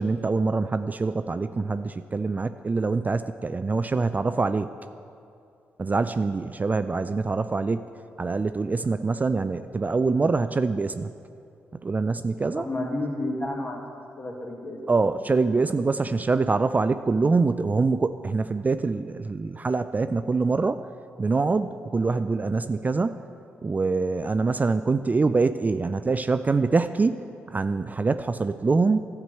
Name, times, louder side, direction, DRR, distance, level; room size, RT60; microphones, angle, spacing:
voice 1, 0.0-4.7 5.8-7.9 8.2-11.1 11.8-12.7 14.9-20.9 21.2-23.2 23.6-29.0, right 4 dB, 30° right, 11 dB, 0.3 m, -24 dB
voice 2, 12.6-13.8 14.2-15.1, left 1 dB, 35° left, 1 dB, 1.9 m, -32 dB
12.0 x 4.7 x 7.8 m, 2.5 s
hypercardioid pair, 40°, 6 cm